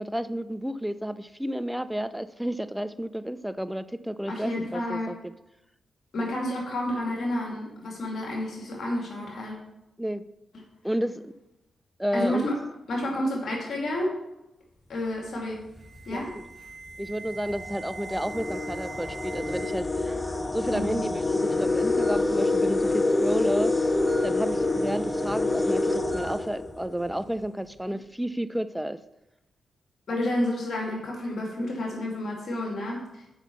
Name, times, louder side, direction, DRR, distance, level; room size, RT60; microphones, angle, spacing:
voice 1, 0.0-5.3 10.0-10.2 10.8-11.3 12.0-12.5 16.1-16.2 17.0-20.2 20.5-23.8 24.2-29.0, equal, 5° right, 13 dB, 0.6 m, -31 dB
voice 2, 4.3-5.1 6.1-9.6 12.1-12.6 12.9-14.1 14.9-15.6 16.1-16.3 20.7-21.1 30.1-33.2, left 1 dB, 65° left, -1 dB, 2.5 m, -30 dB
Alarm, 15.7-19.7 20.0-20.5 21.3-21.4 22.0-22.2 24.1-24.3 26.1-26.3, right 3 dB, 20° right, 3.3 m, -43 dB
sound 1, 15.8-16.0 16.9-17.0 17.4-27.2, left 2 dB, 25° left, 0.9 m, -27 dB
6.3 x 5.6 x 7.0 m, 0.90 s
supercardioid pair, 45°, 0 cm